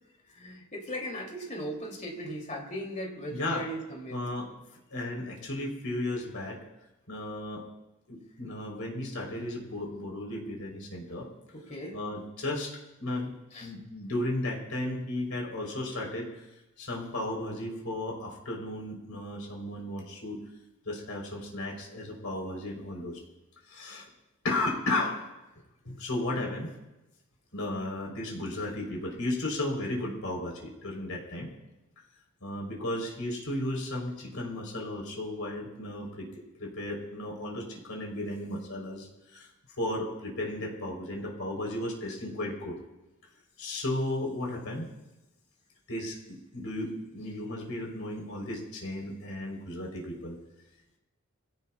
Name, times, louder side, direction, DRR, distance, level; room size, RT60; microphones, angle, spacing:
voice 1, 0.3-4.2 11.5-12.0 13.5-13.7, equal, 35° left, 0 dB, 3.0 m, -38 dB
voice 2, 3.3-3.6 4.1-4.5 4.9-6.6 7.1-7.6 8.1-11.3 11.9-13.3 13.6-16.5 16.8-20.4 20.9-23.2 23.7-24.1 24.4-25.2 25.8-26.7 27.5-31.5 32.4-36.3 36.6-39.5 39.8-42.8 43.6-44.9 45.9-50.4, left 1 dB, 75° left, 0 dB, 3.9 m, -34 dB
24.5 x 17.0 x 2.4 m, 1.0 s
head